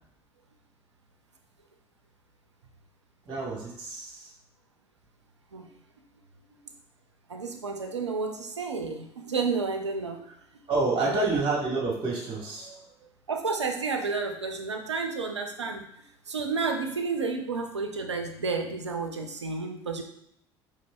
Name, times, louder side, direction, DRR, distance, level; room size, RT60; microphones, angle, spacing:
voice 1, 3.3-4.3 10.7-12.8, right 3 dB, 35° right, -2 dB, 1.2 m, -28 dB
voice 2, 7.3-10.3 11.0-11.4 13.3-15.9 16.3-20.0, right 4 dB, 90° right, 4 dB, 0.4 m, -31 dB
5.1 x 3.3 x 2.2 m, 0.73 s
figure-of-eight pair, 60°, 14 cm